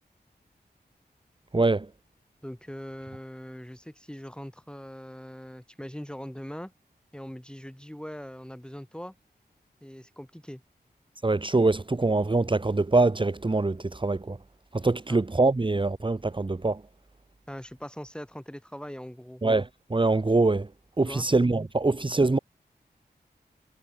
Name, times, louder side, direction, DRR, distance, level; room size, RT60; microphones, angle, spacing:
voice 1, 1.5-1.9 11.2-14.4 14.7-16.8 19.4-20.7 21.0-22.4, right 3 dB, 30° right, 1.2 m, -24 dB
voice 2, 2.4-6.7 7.1-9.2 9.8-10.6 15.1-15.2 17.5-19.4 21.0-21.3, equal, 5° left, 3.6 m, -41 dB
wide cardioid pair, 65°, 17 cm